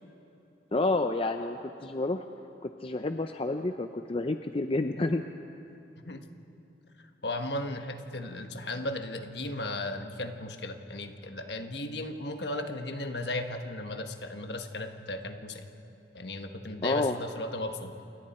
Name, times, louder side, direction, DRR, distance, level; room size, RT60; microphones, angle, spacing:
voice 1, 0.7-2.3 2.6-5.2 16.8-17.2, left 2 dB, 30° left, 7 dB, 0.6 m, -29 dB
voice 2, 7.2-15.6 16.1-18.0, left 1 dB, 65° left, 6 dB, 1.4 m, -36 dB
28.5 x 22.0 x 4.4 m, 2.9 s
head